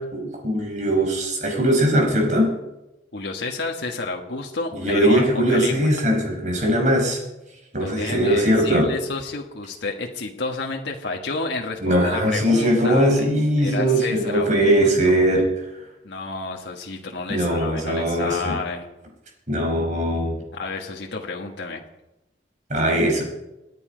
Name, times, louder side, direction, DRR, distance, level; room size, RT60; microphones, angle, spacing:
voice 1, 0.0-2.5 4.7-7.2 7.7-8.9 11.8-15.4 17.3-18.5 19.5-20.4 22.7-23.2, equal, 45° right, 1 dB, 4.9 m, -20 dB
voice 2, 3.1-5.9 7.8-13.1 13.6-15.3 16.0-18.9 20.5-21.8, left 3 dB, 85° left, 1 dB, 1.5 m, -30 dB
27.5 x 9.8 x 5.1 m, 0.99 s
head